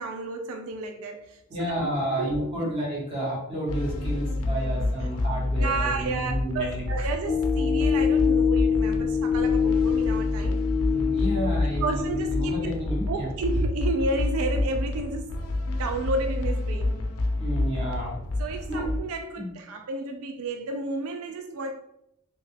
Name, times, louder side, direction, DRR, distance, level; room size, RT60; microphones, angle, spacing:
voice 1, 0.0-1.7 2.2-2.3 5.6-10.6 11.3-11.5 11.8-12.7 13.1-15.4 15.8-17.0 18.4-21.8, right 3 dB, 85° right, 0.3 m, -31 dB
voice 2, 1.5-6.9 10.8-13.3 17.4-18.2 18.7-18.8 19.4-19.5, right 1 dB, 30° right, 1.4 m, -31 dB
sound 1, 3.7-19.0, left 2 dB, 85° left, 0.5 m, -28 dB
sound 2, 7.3-12.8, left 7 dB, 30° left, 0.3 m, -25 dB
2.9 x 2.8 x 3.4 m
head